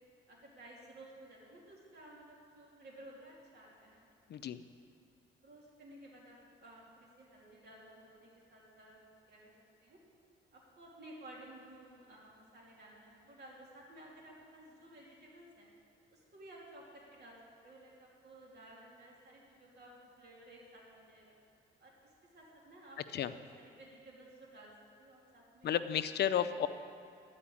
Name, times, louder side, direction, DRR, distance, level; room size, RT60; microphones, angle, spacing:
voice 1, 0.3-4.1 5.4-9.0 9.3-9.5 9.8-10.0 10.5-15.7 16.1-17.4 17.6-21.3 21.8-24.7 25.0-25.8 26.3-26.5, right 1 dB, 55° right, -3 dB, 2.7 m, -55 dB
voice 2, 4.3-4.6 23.1-23.3 25.6-26.7, left 9 dB, 55° left, 12 dB, 0.5 m, -32 dB
11.5 x 5.0 x 8.5 m, 2.4 s
cardioid pair, 90°, 20 cm